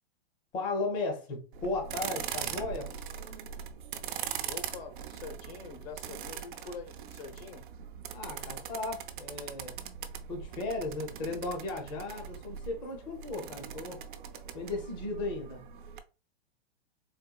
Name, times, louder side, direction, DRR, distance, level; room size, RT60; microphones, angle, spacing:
voice 1, 0.5-2.9 8.1-9.7 10.3-14.0 14.5-15.6, left 3 dB, 15° left, 0.5 m, -35 dB
sound 1, 1.5-16.0, right 8 dB, 55° right, 0.5 m, -41 dB
voice 2, 4.5-7.6, left 5 dB, 75° left, 0.9 m, -45 dB
4.1 x 2.2 x 2.3 m
hypercardioid pair, 155°, 31 cm